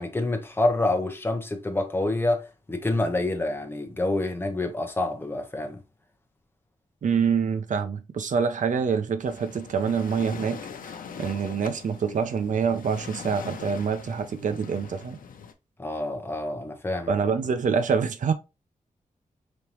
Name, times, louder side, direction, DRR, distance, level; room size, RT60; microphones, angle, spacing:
voice 1, 0.0-5.8 15.8-17.2, left 2 dB, 15° left, 0.8 m, -27 dB
voice 2, 7.0-10.6 11.2-15.2 17.1-18.3, right 6 dB, 65° right, 0.6 m, -26 dB
Waves surf, 9.2-15.5, left 6 dB, 85° left, 0.6 m, -41 dB
5.2 x 2.9 x 2.9 m
wide cardioid pair, 170°, 14 cm